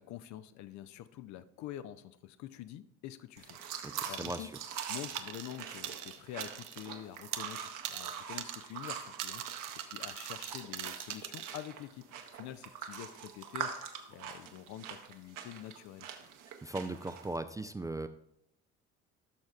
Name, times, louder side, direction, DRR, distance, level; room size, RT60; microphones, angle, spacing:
voice 1, 0.0-4.5 4.9-12.0 12.3-16.1, left 12 dB, 50° left, 13 dB, 0.5 m, -47 dB
sound 1, 3.4-17.4, right 7 dB, 60° right, 1.0 m, -44 dB
voice 2, 3.8-4.5 16.6-18.1, right 2 dB, 10° right, 9 dB, 0.3 m, -38 dB
sound 2, 4.1-4.5 4.8-6.9 7.2-11.6, right 10 dB, 80° right, 0.6 m, -42 dB
14.0 x 6.3 x 2.4 m, 0.77 s
hypercardioid pair, 55°, 35 cm